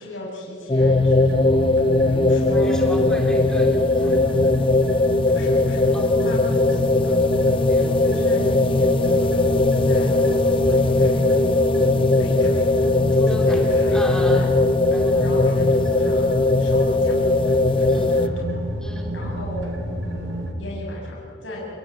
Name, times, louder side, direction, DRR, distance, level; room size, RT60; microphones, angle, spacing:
voice 1, 0.0-1.5 2.1-2.8 5.1-7.2 8.0-9.4 9.6-11.7 12.1-12.7 13.3-14.5 15.2-17.2 17.8-18.4 19.1-19.7 20.0-21.6, left 1 dB, 80° left, -3 dB, 7.0 m, -37 dB
sound 1, 0.7-18.3, left 2 dB, 25° left, 0.7 m, -19 dB
sound 2, 0.8-20.5, equal, 90° right, 3.6 m, -30 dB
voice 2, 2.3-4.5 5.9-6.2 7.7-8.2 13.1-14.5 14.9-15.3 17.9-18.2 18.8-19.4, equal, 5° left, 1 dB, 3.4 m, -35 dB
28.5 x 19.0 x 9.9 m, 2.9 s
head